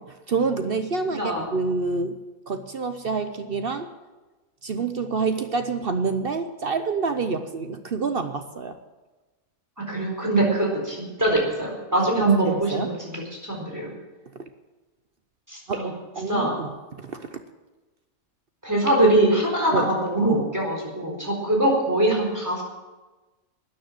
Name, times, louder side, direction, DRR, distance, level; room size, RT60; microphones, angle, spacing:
voice 1, 0.3-2.2 2.5-3.9 4.6-8.8 12.0-12.9 14.4-14.5 15.7-17.4 19.7-19.9, right 4 dB, 50° right, 9 dB, 0.9 m, -27 dB
voice 2, 1.1-1.4 9.8-13.2 13.4-13.9 15.5-15.9 16.3-16.5 18.6-22.6, right 1 dB, 10° right, -1 dB, 4.2 m, -23 dB
13.0 x 9.9 x 7.5 m, 1.2 s
omnidirectional pair, 1.4 m